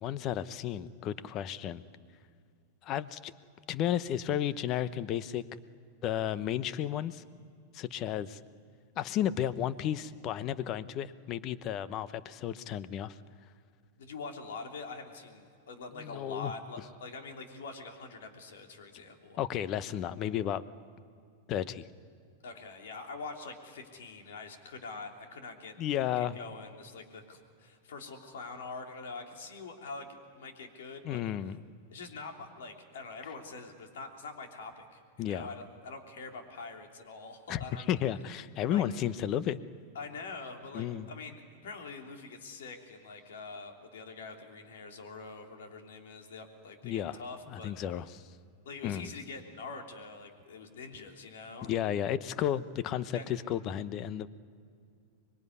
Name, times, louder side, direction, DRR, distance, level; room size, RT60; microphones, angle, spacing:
voice 1, 0.0-1.8 2.8-3.3 3.7-5.4 6.0-7.2 7.7-8.4 9.0-13.2 16.0-16.5 19.4-20.6 21.5-21.9 25.8-26.4 31.0-31.6 35.2-35.5 37.5-39.6 40.7-41.1 46.8-47.2 47.5-48.2 48.8-49.1 51.6-54.3, left 10 dB, 40° left, 15 dB, 1.0 m, -33 dB
voice 2, 14.0-19.4 22.4-25.8 26.2-31.3 31.9-37.9 38.7-38.8 39.9-47.8 48.6-51.7 53.1-53.3, left 4 dB, 70° left, 3 dB, 3.2 m, -44 dB
25.0 x 21.5 x 9.8 m, 2.3 s
hypercardioid pair, 100°, 0 cm